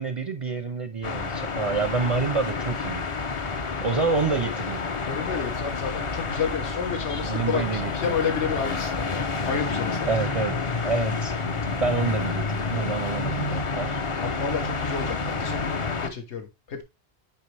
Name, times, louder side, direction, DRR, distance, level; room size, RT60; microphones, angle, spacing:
voice 1, 0.0-3.0 3.8-4.8 7.2-8.1 10.1-10.6 10.8-14.0, right 4 dB, 45° right, 0.4 m, -28 dB
sound 1, 1.0-16.1, left 4 dB, 40° left, 0.5 m, -29 dB
voice 2, 5.0-10.1 14.2-16.8, left 6 dB, 80° left, 1.4 m, -31 dB
9.2 x 3.9 x 3.2 m
omnidirectional pair, 1.2 m